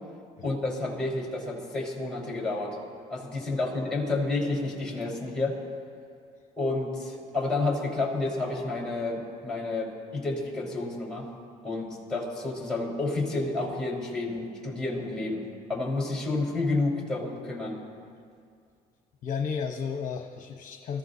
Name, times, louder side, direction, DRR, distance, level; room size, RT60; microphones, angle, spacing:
voice 1, 0.4-2.7 3.1-5.6 6.6-11.3 11.6-15.4 15.7-17.8, left 2 dB, 5° left, -3 dB, 4.6 m, -30 dB
voice 2, 19.2-21.0, left 6 dB, 50° left, 2 dB, 1.0 m, -33 dB
25.0 x 14.5 x 2.8 m, 2.2 s
cardioid pair, 110°, 17 cm